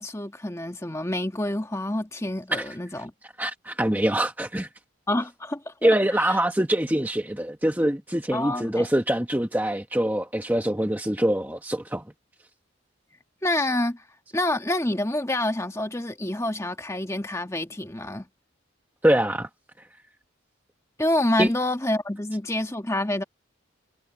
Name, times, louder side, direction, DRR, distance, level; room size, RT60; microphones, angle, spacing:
voice 1, 0.0-3.1 5.1-5.9 6.2-6.4 8.3-8.9 13.4-14.0 14.3-18.3 21.0-23.2, left 1 dB, 15° left, 1.5 m, -27 dB
voice 2, 3.4-4.7 5.8-12.0 19.0-19.5 21.4-21.5, right 1 dB, 10° right, 1.0 m, -24 dB
head